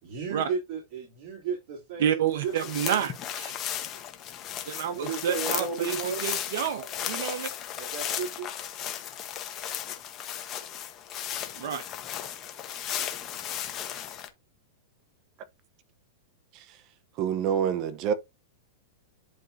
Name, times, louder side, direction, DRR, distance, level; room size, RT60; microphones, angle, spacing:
voice 1, 0.0-2.5 4.9-6.2 7.7-8.5, right 6 dB, 50° right, 3.4 m, -34 dB
voice 2, 2.0-3.6 4.7-7.5 11.6-11.8, right 9 dB, 65° right, 1.1 m, -29 dB
sound 1, 2.3-14.3, left 10 dB, 30° left, 1.1 m, -35 dB
voice 3, 16.5-16.8 17.1-18.1, right 8 dB, 35° right, 0.9 m, -27 dB
11.0 x 3.8 x 2.7 m
supercardioid pair, 150°, 0 cm